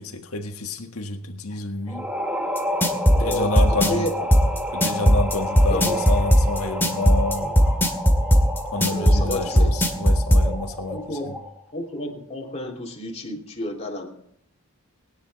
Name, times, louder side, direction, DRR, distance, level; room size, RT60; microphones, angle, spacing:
voice 1, 0.0-2.1 3.1-4.1 4.7-7.5 8.7-11.3, left 2 dB, 85° left, 1.7 m, -29 dB
sound 1, 1.9-11.6, equal, 5° right, 1.5 m, -30 dB
sound 2, 2.6-10.4, equal, 10° left, 2.3 m, -16 dB
voice 2, 3.1-4.3 5.7-6.0 8.9-9.7 10.9-11.4 11.7-14.1, left 1 dB, 30° left, 2.9 m, -31 dB
22.0 x 10.0 x 4.1 m
head